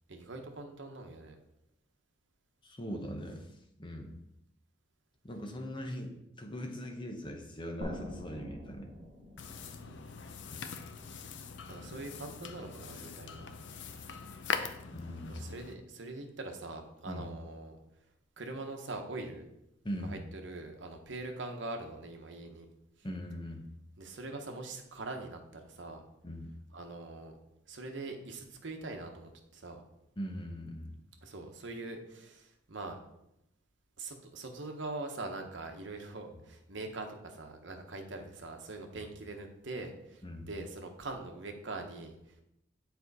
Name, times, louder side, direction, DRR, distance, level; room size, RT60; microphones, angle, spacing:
voice 1, 0.1-1.4 9.8-10.2 11.7-13.5 13.9-14.0 15.3-17.8 18.4-19.5 20.0-22.7 24.0-26.0 26.7-27.3 27.7-29.8 31.2-33.0 34.0-42.4, right 2 dB, 70° right, 4 dB, 1.0 m, -43 dB
voice 2, 2.6-3.5 3.8-4.2 5.2-8.9 10.5-10.8 14.9-15.5 17.1-17.3 19.8-20.2 23.0-23.7 26.2-26.5 30.2-31.0 40.2-40.5, equal, 25° left, 3 dB, 0.9 m, -41 dB
sound 1, 7.8-11.3, equal, 45° right, 2.2 m, -45 dB
sound 2, 9.4-15.7, left 5 dB, 65° left, 0.5 m, -42 dB
7.4 x 4.4 x 4.0 m, 0.83 s
head